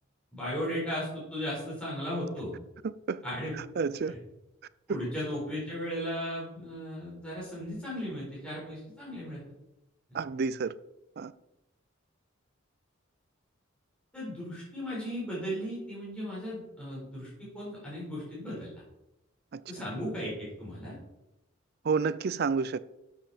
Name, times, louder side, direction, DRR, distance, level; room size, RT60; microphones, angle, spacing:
voice 1, 0.3-2.5 3.2-3.5 4.1-4.2 4.9-9.4 14.1-18.7 19.7-21.0, equal, 5° left, 4.4 m, -36 dB
voice 2, 2.8-3.2 3.8-4.1 10.1-10.7 11.2-11.3 19.5-19.6 21.8-22.8, right 5 dB, 50° right, 0.4 m, -29 dB
11.5 x 7.2 x 4.3 m
head